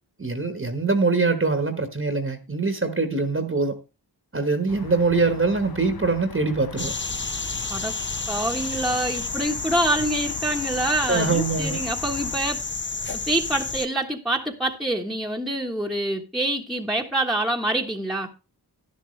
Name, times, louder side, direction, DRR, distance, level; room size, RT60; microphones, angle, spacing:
voice 1, 0.2-3.8 4.3-6.9 11.0-11.9, right 3 dB, 35° right, 1.4 m, -23 dB
sound 1, 4.7-12.4, left 6 dB, 65° left, 1.0 m, -41 dB
sound 2, 6.8-13.9, left 4 dB, 30° left, 0.9 m, -30 dB
voice 2, 8.3-12.6 13.3-18.3, right 1 dB, ahead, 1.3 m, -26 dB
12.0 x 11.0 x 3.2 m
wide cardioid pair, 95°, 39 cm